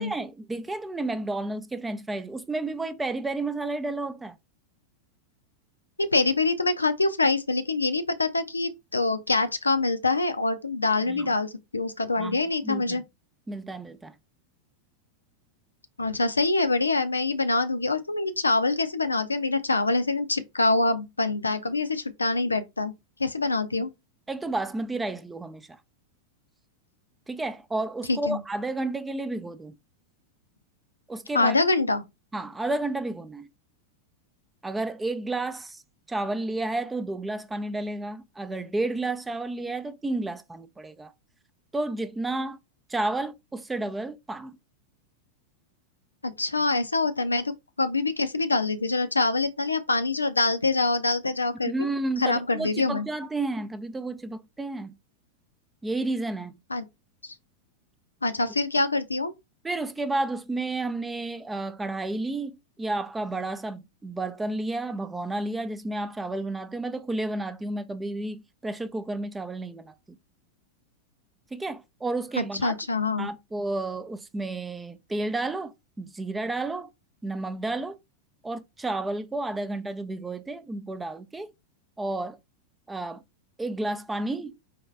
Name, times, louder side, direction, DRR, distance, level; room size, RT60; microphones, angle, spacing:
voice 1, 0.0-4.4 11.1-11.3 12.2-13.0 13.5-14.1 24.3-25.8 27.3-29.7 31.1-31.6 32.3-33.5 34.6-35.8 36.1-41.1 41.7-42.6 42.9-44.6 51.7-54.9 55.8-56.6 59.6-69.9 71.5-72.7 73.2-75.7 76.0-76.9 77.2-78.0 78.4-81.5 82.0-82.4 82.9-83.2 83.6-84.5, right 2 dB, 10° right, 0.5 m, -31 dB
voice 2, 6.0-13.0 16.0-22.9 23.2-23.9 28.1-28.4 31.3-32.0 46.2-51.7 52.2-53.1 56.7-56.8 57.2-57.3 58.2-59.3 72.4-73.3, left 3 dB, 80° left, 0.5 m, -25 dB
4.3 x 3.1 x 3.2 m
figure-of-eight pair, 90°, 0 cm